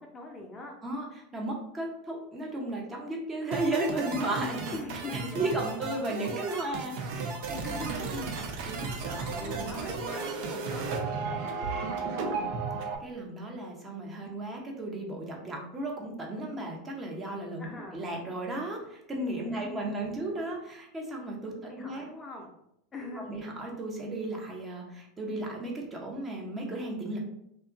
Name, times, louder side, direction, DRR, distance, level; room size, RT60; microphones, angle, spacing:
voice 1, 0.0-0.7 4.7-5.8 7.6-8.0 9.4-12.4 17.6-18.0 19.4-20.3 21.6-22.5 22.9-23.3, left 2 dB, 25° left, 1 dB, 0.5 m, -42 dB
voice 2, 0.8-4.7 5.3-7.6 8.1-8.3 8.7-9.7 13.0-22.1 23.0-27.2, right 2 dB, 20° right, -1 dB, 0.7 m, -35 dB
sound 1, 3.5-13.0, right 4 dB, 55° right, 0.4 m, -34 dB
2.8 x 2.3 x 2.4 m, 0.77 s
figure-of-eight pair, 85°, 0 cm